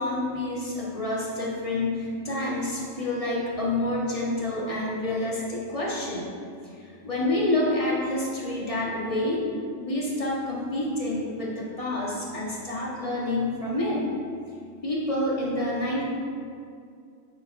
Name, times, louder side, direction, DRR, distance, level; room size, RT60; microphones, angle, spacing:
voice 1, 0.0-6.3 6.6-9.5 9.8-14.1 14.8-16.0, left 1 dB, 25° left, -5 dB, 1.3 m, -28 dB
9.1 x 6.8 x 2.5 m, 2.4 s
omnidirectional pair, 1.4 m